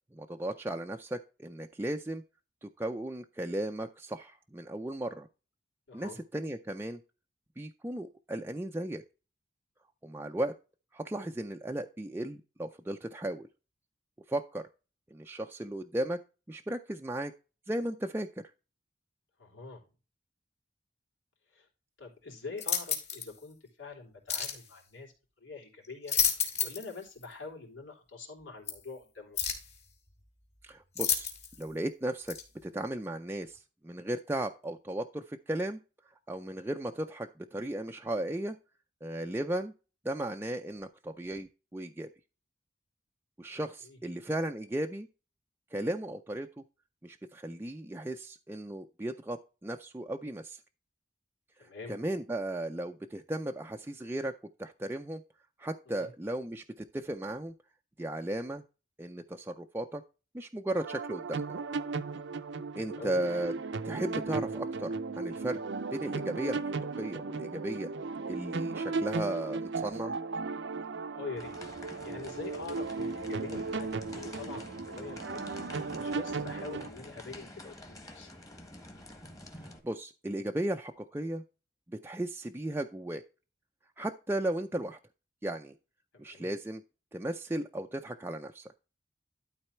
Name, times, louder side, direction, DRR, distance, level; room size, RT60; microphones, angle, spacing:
voice 1, 0.1-2.2 2.6-5.3 5.9-7.0 7.6-9.0 10.0-10.5 10.9-13.5 14.3-14.6 15.1-16.2 16.5-17.3 17.7-18.3 30.6-31.3 31.6-32.4 32.6-35.8 36.3-38.6 39.0-39.7 40.0-42.1 43.4-45.1 45.7-46.6 47.0-50.6 51.6-54.3 54.6-55.2 55.6-57.5 58.0-58.6 59.0-60.0 60.3-61.4 62.8-63.5 63.8-65.6 65.9-67.9 68.2-70.1 79.6-81.4 81.9-83.2 84.0-85.0 85.4-85.7 86.2-86.8 87.1-88.7, right 1 dB, 10° right, 4 dB, 0.4 m, -35 dB
voice 2, 5.9-6.2 19.4-19.8 21.5-21.7 22.0-25.1 25.4-26.2 26.6-29.4 43.5-43.6 43.8-44.0 51.6-52.0 55.9-56.1 62.7-63.2 71.1-71.5 72.0-75.4 75.9-78.3 86.1-86.5, left 4 dB, 85° left, -1 dB, 3.6 m, -45 dB
sound 1, 22.6-23.3 24.3-24.6 25.8-26.9 27.2-27.3 28.7-28.8 29.4-29.7 31.0-31.6 32.3-32.4, left 7 dB, 35° left, 2.9 m, -30 dB
sound 2, 60.8-76.9, right 4 dB, 70° right, 0.6 m, -36 dB
sound 3, 71.4-79.8, left 1 dB, 20° left, 1.5 m, -48 dB
12.0 x 4.1 x 4.4 m, 0.33 s
head